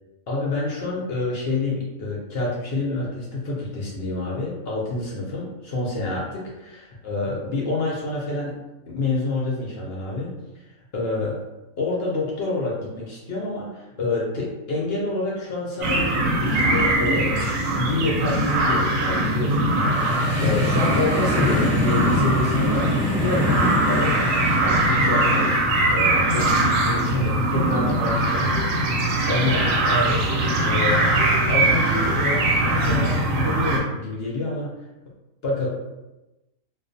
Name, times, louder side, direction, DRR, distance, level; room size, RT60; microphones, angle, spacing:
voice 1, 0.3-8.6 8.9-10.3 10.9-11.4 11.8-17.4 17.7-25.6 25.9-30.4 30.6-31.1 31.5-34.8 35.4-35.7, left 2 dB, 65° left, -4 dB, 0.6 m, -28 dB
sound 1, 15.8-33.8, right 1 dB, 70° right, 0.9 m, -21 dB
sound 2, 19.7-24.8, left 1 dB, 10° left, 0.6 m, -26 dB
2.3 x 2.3 x 2.5 m, 1.0 s
omnidirectional pair, 1.6 m